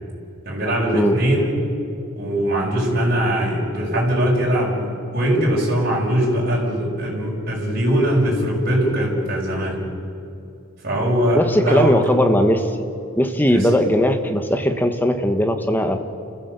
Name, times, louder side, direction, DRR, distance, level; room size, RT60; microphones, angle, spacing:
voice 1, 0.4-1.6 2.1-4.8 5.1-9.8 10.8-12.0 13.5-13.7, equal, 45° right, -4 dB, 6.3 m, -21 dB
voice 2, 11.3-12.7 13.2-16.0, equal, 10° left, 6 dB, 1.3 m, -18 dB
29.5 x 15.0 x 8.3 m, 2.6 s
head